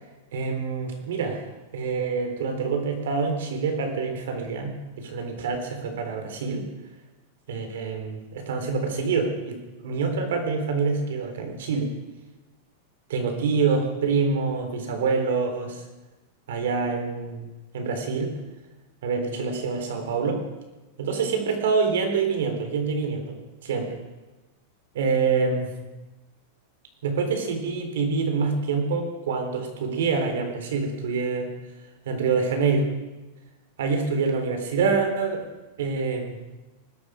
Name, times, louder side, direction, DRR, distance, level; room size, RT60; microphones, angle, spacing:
voice 1, 0.3-1.5 1.7-6.7 7.5-11.9 13.1-15.8 16.5-17.5 17.7-18.3 19.0-20.4 21.0-23.4 23.6-24.0 24.9-25.7 27.0-31.5 32.1-32.9 33.8-35.4 35.8-36.4, right 4 dB, 80° right, 5 dB, 3.7 m, -26 dB
20.0 x 12.5 x 5.1 m, 1.1 s
supercardioid pair, 160°, 0 cm